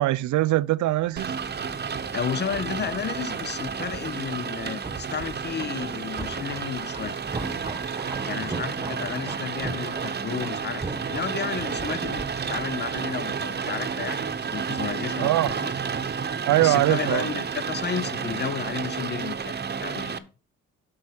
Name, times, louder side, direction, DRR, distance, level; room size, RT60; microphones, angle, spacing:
voice 1, 0.0-1.3 15.2-15.5 16.5-17.3, right 16 dB, 70° right, 0.5 m, -22 dB
sound 1, 1.0-14.8 15.1-15.2, right 2 dB, 15° right, 1.1 m, -40 dB
Rain, 1.2-20.2, right 6 dB, 35° right, 0.9 m, -31 dB
voice 2, 2.1-7.2 8.3-14.2 14.5-15.7 16.6-20.3, left 7 dB, 35° left, 0.6 m, -32 dB
8.6 x 5.5 x 6.4 m
cardioid pair, 90°, 30 cm